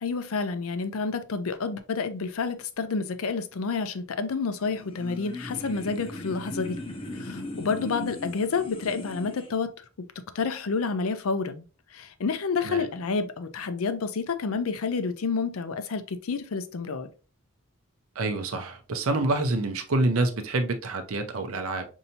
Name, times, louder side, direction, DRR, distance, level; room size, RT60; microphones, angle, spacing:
voice 1, 0.0-6.8 7.1-9.7 10.3-11.6 11.9-17.1, left 4 dB, 75° left, 0.5 m, -29 dB
sound 1, 4.6-9.5, left 1 dB, 25° left, 0.6 m, -38 dB
voice 2, 18.2-21.9, right 2 dB, 75° right, 0.6 m, -27 dB
5.4 x 2.7 x 2.7 m
head